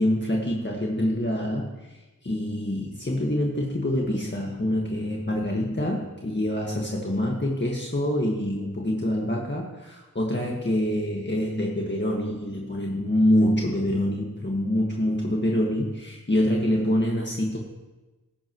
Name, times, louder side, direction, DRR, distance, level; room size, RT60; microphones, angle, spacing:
voice 1, 0.0-17.6, left 1 dB, 30° left, -2 dB, 1.8 m, -26 dB
15.5 x 13.0 x 3.1 m, 1.1 s
wide cardioid pair, 50°, 35 cm